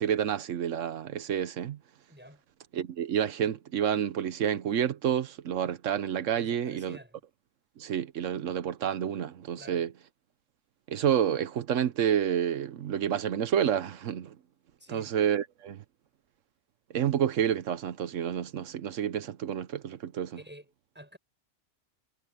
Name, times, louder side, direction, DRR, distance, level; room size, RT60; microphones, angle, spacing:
voice 1, 0.0-1.8 2.7-7.0 7.8-9.9 10.9-14.3 14.9-15.8 16.9-20.4, right 9 dB, 90° right, 1.2 m, -29 dB
voice 2, 2.1-2.4 6.3-7.2 9.6-9.9 14.8-15.2 20.3-21.2, equal, 10° right, 6.9 m, -50 dB
omnidirectional pair, 1.3 m